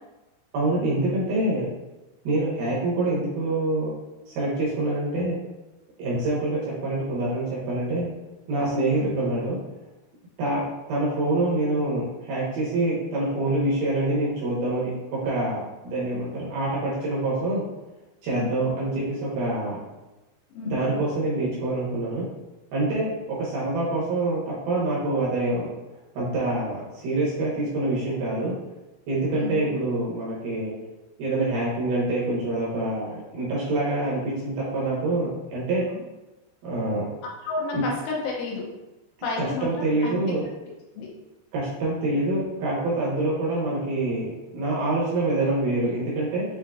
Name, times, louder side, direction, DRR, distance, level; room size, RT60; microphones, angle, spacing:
voice 1, 0.5-1.7 2.2-3.9 4.3-5.4 6.0-8.1 8.5-9.6 10.4-10.6 10.9-17.6 18.2-19.8 20.6-22.3 22.7-24.4 24.7-25.7 26.2-28.5 29.1-30.8 31.2-35.9 36.6-37.0 37.7-37.8 39.4-40.4 41.5-46.5, right 2 dB, 75° right, -6 dB, 2.4 m, -26 dB
voice 2, 20.6-20.9 29.3-29.7 35.9-36.0 37.4-38.6 39.2-40.4 41.0-41.1, left 3 dB, 90° left, -3 dB, 3.5 m, -31 dB
7.8 x 2.7 x 2.3 m, 1.0 s
omnidirectional pair, 5.4 m